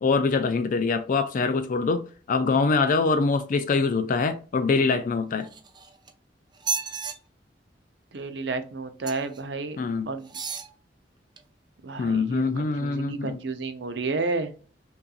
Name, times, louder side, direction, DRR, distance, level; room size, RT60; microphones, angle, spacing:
voice 1, 0.0-5.5 9.8-10.1 12.0-13.4, left 4 dB, 50° left, 0.4 m, -24 dB
sound 1, 5.4-6.1 6.5-7.1 9.0-9.4 10.2-10.7 11.4-11.5, right 5 dB, 25° right, 0.5 m, -32 dB
voice 2, 8.1-9.8 10.1-10.3 11.8-14.5, right 3 dB, 75° right, 0.6 m, -31 dB
5.4 x 2.6 x 2.4 m
head